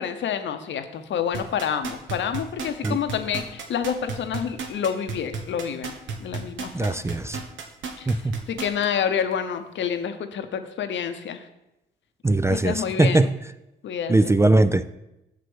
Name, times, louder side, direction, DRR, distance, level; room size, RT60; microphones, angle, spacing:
voice 1, 0.0-5.9 6.2-7.1 8.0-8.2 8.5-11.5 12.5-13.3 13.8-14.3, left 8 dB, 65° left, 9 dB, 0.8 m, -28 dB
sound 1, 1.3-8.8 9.3-9.4, right 5 dB, 75° right, 1.1 m, -32 dB
voice 2, 6.7-7.4 8.1-8.4 12.2-13.3 14.1-15.0, right 2 dB, 15° right, 12 dB, 0.4 m, -20 dB
6.8 x 4.8 x 6.1 m, 0.91 s
supercardioid pair, 60°, 20 cm